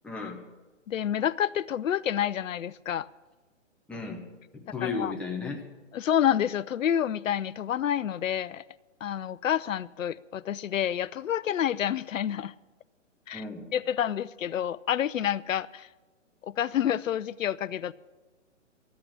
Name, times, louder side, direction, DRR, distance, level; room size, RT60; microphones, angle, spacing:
voice 1, 0.0-0.4 3.9-4.2 4.5-5.6 13.3-13.6, left 4 dB, 5° left, 0.9 m, -34 dB
voice 2, 0.9-3.1 4.8-5.1 5.9-8.6 9.0-12.5 13.3-13.4 13.7-15.9 16.4-17.9, left 10 dB, 90° left, 0.6 m, -28 dB
13.5 x 8.5 x 8.5 m
hypercardioid pair, 150°, 38 cm